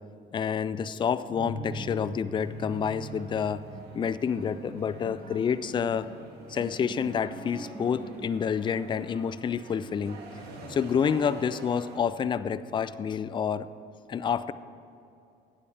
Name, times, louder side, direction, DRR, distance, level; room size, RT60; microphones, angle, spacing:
voice 1, 0.3-3.6 3.9-6.1 6.5-10.2 10.7-13.7 14.1-14.5, left 7 dB, 30° left, 14 dB, 0.4 m, -28 dB
sound 1, 1.3-8.2, right 1 dB, 15° right, 2.1 m, -42 dB
sound 2, 2.4-12.0, right 3 dB, 75° right, 1.7 m, -49 dB
15.5 x 8.5 x 3.4 m, 2.7 s
cardioid pair, 110°, 17 cm